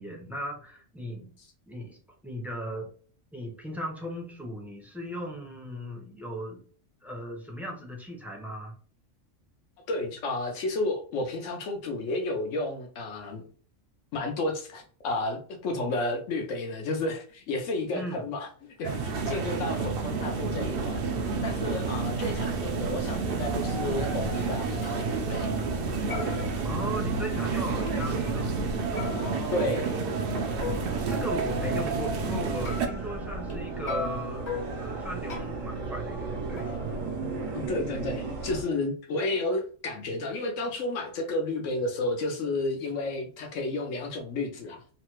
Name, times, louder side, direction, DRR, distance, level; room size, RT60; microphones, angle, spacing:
voice 1, 0.0-1.3 1.6-2.0 2.2-2.9 3.3-6.6 7.0-8.7 17.9-18.3 26.6-28.6 28.9-29.8 31.1-36.8, equal, ahead, 0 dB, 0.5 m, -37 dB
voice 2, 9.9-13.4 14.1-25.5 29.5-29.9 37.5-44.8, left 2 dB, 75° left, 4 dB, 1.1 m, -32 dB
sound 1, 18.8-32.9, right 4 dB, 60° right, 0.6 m, -30 dB
sound 2, 19.7-38.6, right 3 dB, 80° right, 1.2 m, -37 dB
sound 3, 24.8-25.0 25.4-25.8 26.1-27.4 27.9-28.0 29.0-31.0 32.6-33.6 33.9-35.8 36.6-37.7, left 4 dB, 35° left, 0.8 m, -39 dB
3.2 x 2.1 x 3.0 m, 0.43 s
omnidirectional pair, 1.3 m